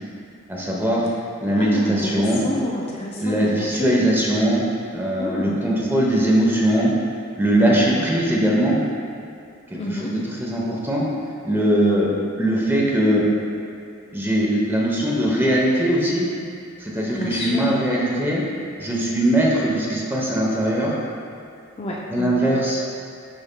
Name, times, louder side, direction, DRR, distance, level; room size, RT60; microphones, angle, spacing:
voice 1, 0.5-1.0 1.4-2.4 3.2-4.6 4.9-6.9 7.4-8.8 9.7-11.1 11.4-12.1 12.4-13.2 14.1-16.3 16.8-18.4 18.8-20.9 22.1-22.8, right 1 dB, 10° right, -4 dB, 0.8 m, -20 dB
voice 2, 1.5-4.1 5.2-5.6 7.5-8.1 9.7-10.2 17.1-17.8 21.8-22.5, left 2 dB, 30° left, -3 dB, 0.4 m, -29 dB
10.5 x 4.3 x 2.2 m, 2.4 s
head